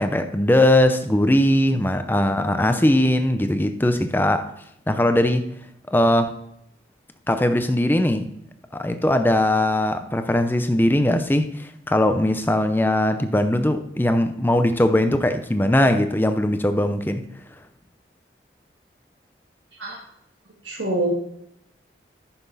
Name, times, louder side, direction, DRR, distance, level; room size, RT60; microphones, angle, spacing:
voice 1, 0.0-4.5 4.9-5.5 5.9-6.3 7.3-8.3 8.7-17.2, left 1 dB, 10° left, 0.5 m, -20 dB
voice 2, 20.6-21.1, right 2 dB, 85° right, 1.9 m, -26 dB
10.0 x 5.9 x 4.1 m
head